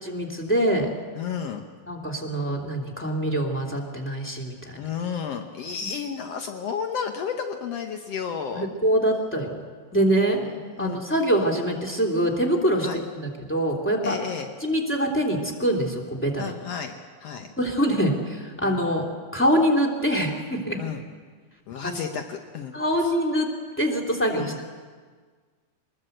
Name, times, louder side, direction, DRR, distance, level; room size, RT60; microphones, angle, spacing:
voice 1, 0.0-0.9 1.9-4.9 8.5-9.6 9.9-10.4 10.8-14.2 14.6-16.4 17.6-19.0 19.3-20.8 21.8-22.0 22.7-23.5 23.8-24.7, right 1 dB, 5° left, 1 dB, 2.1 m, -24 dB
voice 2, 1.1-1.6 4.8-8.7 10.4-11.0 12.8-13.0 14.0-14.5 16.4-16.9 17.2-17.5 18.6-18.7 20.8-21.0 21.7-22.7 23.0-23.1 24.4-24.6, left 7 dB, 80° left, 5 dB, 1.4 m, -32 dB
24.0 x 20.5 x 8.0 m, 1.5 s
omnidirectional pair, 4.4 m